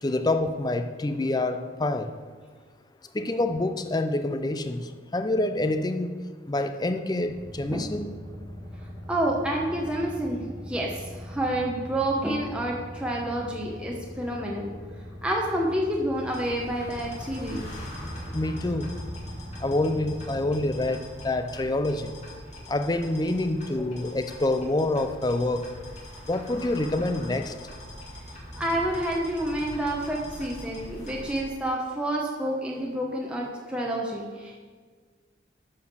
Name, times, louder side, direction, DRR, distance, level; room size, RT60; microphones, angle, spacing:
voice 1, 0.0-2.1 3.1-6.2 6.5-8.2 18.3-18.9 19.6-22.1 22.7-25.7 26.3-27.5, left 2 dB, 20° left, 8 dB, 0.5 m, -27 dB
sound 1, 7.2-20.8, left 1 dB, 45° right, 1.2 m, -41 dB
voice 2, 9.1-14.7 15.2-17.7 28.6-34.6, right 1 dB, 5° right, -2 dB, 0.9 m, -29 dB
sound 2, 16.3-31.4, equal, 40° left, 2.3 m, -42 dB
10.5 x 5.0 x 6.6 m, 1.5 s
head